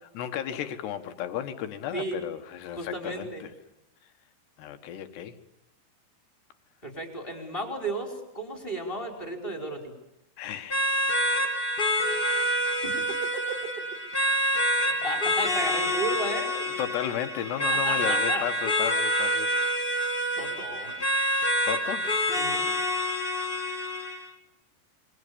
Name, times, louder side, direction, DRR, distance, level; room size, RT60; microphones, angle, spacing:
voice 1, 0.2-3.5 4.6-5.4 10.4-10.8 16.8-19.5 21.7-22.1, left 10 dB, 85° left, 8 dB, 3.7 m, -33 dB
voice 2, 2.8-3.4 6.8-9.9 12.8-13.6 14.8-16.6 17.7-18.4 20.4-21.0 22.3-22.7, right 1 dB, 15° left, 3 dB, 5.0 m, -34 dB
sound 1, 10.7-24.3, equal, 30° left, 0.9 m, -27 dB
28.5 x 23.5 x 7.0 m, 0.93 s
omnidirectional pair, 4.7 m